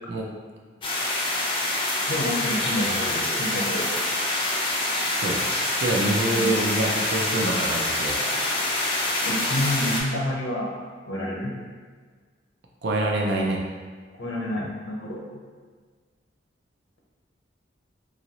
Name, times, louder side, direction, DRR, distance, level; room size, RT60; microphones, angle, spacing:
sound 1, 0.8-10.0, left 1 dB, 25° left, 0.5 m, -26 dB
voice 1, 2.1-3.9 6.3-6.6 9.2-10.7 11.1-11.5 14.2-15.4, left 1 dB, 90° left, -3 dB, 0.8 m, -29 dB
voice 2, 5.8-8.2 12.8-13.6, right 1 dB, 65° right, 0 dB, 0.5 m, -25 dB
3.0 x 2.5 x 2.9 m, 1.5 s
head